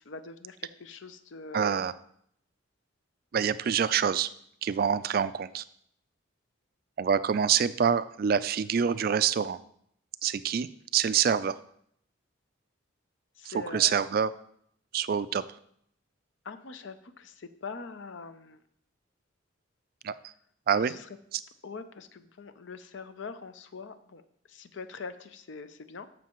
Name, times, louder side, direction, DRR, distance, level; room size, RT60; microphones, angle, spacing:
voice 1, 0.0-1.8 13.4-13.9 16.4-18.6 20.8-21.2 21.6-24.2 24.5-26.1, left 4 dB, 65° left, 11 dB, 0.6 m, -43 dB
voice 2, 1.5-1.9 3.3-4.3 4.6-5.6 7.0-9.6 10.2-11.6 13.5-14.3 14.9-15.4 20.0-20.1 20.7-20.9, right 7 dB, 45° right, 15 dB, 0.3 m, -26 dB
13.0 x 6.3 x 3.0 m, 0.69 s
head